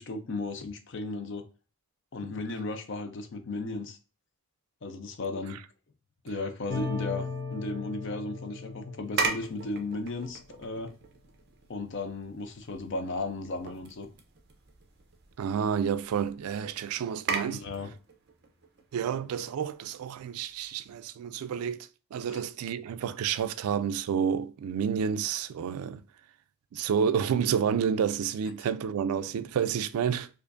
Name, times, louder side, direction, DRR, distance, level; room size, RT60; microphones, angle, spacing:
voice 1, 0.0-1.5 2.1-4.0 4.8-5.6 6.2-10.9 11.7-14.1 17.5-17.9 22.3-22.4, left 3 dB, 55° left, 0.5 m, -35 dB
sound 1, 6.7-10.1, left 4 dB, 20° left, 0.9 m, -37 dB
sound 2, 9.0-21.0, right 4 dB, 50° right, 0.7 m, -39 dB
voice 2, 15.4-17.7 18.9-26.0 26.7-30.3, right 7 dB, 80° right, 0.3 m, -30 dB
4.5 x 2.5 x 2.4 m
head